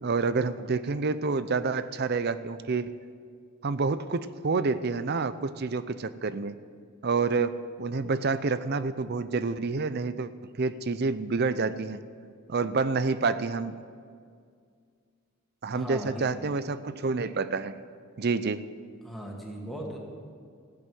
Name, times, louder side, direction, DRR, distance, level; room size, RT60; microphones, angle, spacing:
voice 1, 0.0-3.0 3.6-6.5 7.0-7.5 7.8-10.3 10.6-12.0 12.5-13.7 15.6-17.7 18.2-18.6, right 4 dB, 50° right, 14 dB, 0.5 m, -28 dB
voice 2, 15.7-16.3 19.0-20.0, equal, ahead, -2 dB, 2.1 m, -38 dB
14.5 x 8.2 x 9.1 m, 2.2 s
head